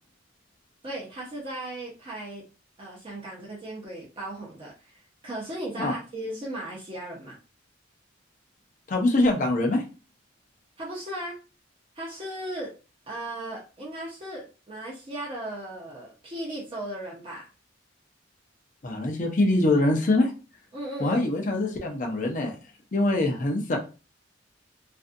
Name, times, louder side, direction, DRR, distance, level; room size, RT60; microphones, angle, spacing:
voice 1, 0.8-2.4 2.8-7.4 10.8-11.4 11.9-12.7 13.1-17.5 20.7-21.3, right 1 dB, 25° right, -4 dB, 0.7 m, -36 dB
voice 2, 8.9-9.8 18.8-20.3 21.0-22.6 22.9-23.8, left 2 dB, 40° left, 2 dB, 0.5 m, -23 dB
2.5 x 2.4 x 2.5 m, 0.32 s
head